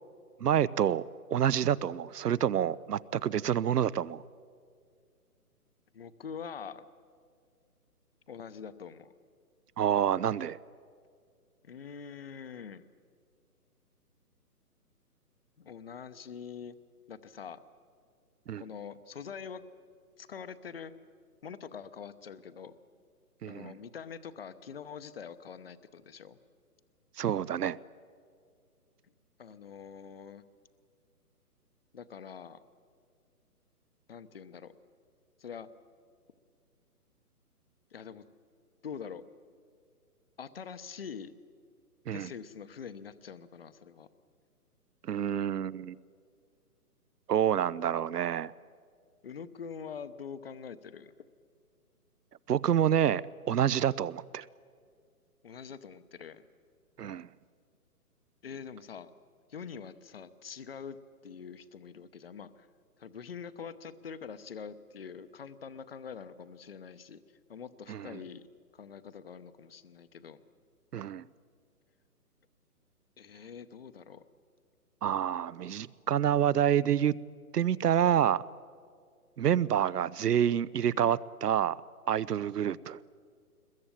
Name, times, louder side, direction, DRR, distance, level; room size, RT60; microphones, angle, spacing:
voice 1, 0.4-1.0 1.3-4.2 9.8-10.6 18.5-18.6 23.4-23.7 27.2-27.8 42.1-42.3 45.1-46.0 47.3-48.5 52.5-53.2 53.5-54.5 57.0-57.3 67.9-68.1 70.9-71.3 75.0-77.2 77.5-78.4 79.4-81.8 82.1-83.0, right 9 dB, 75° right, 22 dB, 0.8 m, -28 dB
voice 2, 5.9-6.9 8.3-9.1 11.6-12.8 15.6-16.8 17.1-17.6 18.6-19.6 20.2-20.9 21.4-22.7 23.4-26.4 29.4-30.4 31.9-32.6 34.1-34.7 35.4-35.7 37.9-38.2 38.8-39.2 40.4-41.3 42.1-44.1 49.2-51.1 55.4-56.5 58.4-59.1 59.5-61.0 61.2-62.7 63.0-67.2 67.5-68.5 68.7-70.4 73.2-74.2 80.9-81.2 82.6-82.8, left 6 dB, 40° left, 13 dB, 0.8 m, -44 dB
22.0 x 21.5 x 8.9 m, 2.1 s
hypercardioid pair, 170°, 47 cm